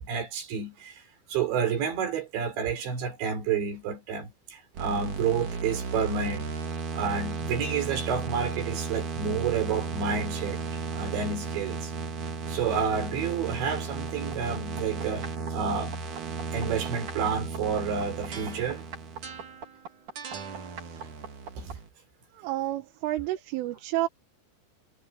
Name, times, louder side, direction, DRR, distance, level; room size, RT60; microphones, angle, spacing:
voice 1, 0.1-1.0 1.3-6.4 6.9-11.9 12.5-16.1 16.5-18.8 21.6-21.7, right 6 dB, 65° right, 6.6 m, -30 dB
sound 1, 4.8-21.9, right 4 dB, 45° right, 4.1 m, -35 dB
voice 2, 22.4-24.1, right 16 dB, 85° right, 3.9 m, -30 dB
omnidirectional pair, 5.6 m